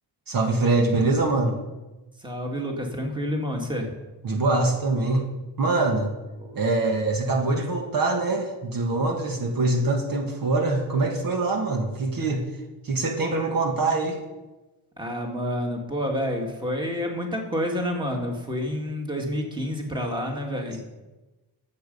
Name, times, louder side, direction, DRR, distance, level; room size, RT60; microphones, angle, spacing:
voice 1, 0.3-1.6 4.2-6.1 6.5-12.4 12.8-14.2, right 2 dB, 55° right, 3 dB, 1.7 m, -24 dB
voice 2, 2.2-3.9 6.4-6.6 15.0-20.8, equal, 10° right, 1 dB, 2.1 m, -29 dB
13.5 x 7.5 x 5.5 m, 1.1 s
cardioid pair, 110°, 42 cm